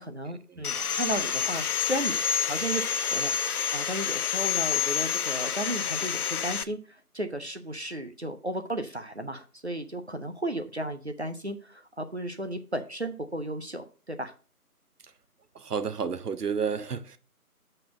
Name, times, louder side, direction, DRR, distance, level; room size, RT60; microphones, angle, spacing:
voice 1, 0.0-2.2 2.4-14.3, right 1 dB, 45° right, 0.6 m, -34 dB
Sawing, 0.6-6.6, left 7 dB, 75° left, 0.6 m, -28 dB
voice 2, 15.5-17.2, right 6 dB, 85° right, 0.9 m, -31 dB
6.5 x 4.3 x 6.1 m
figure-of-eight pair, 180°, 45 cm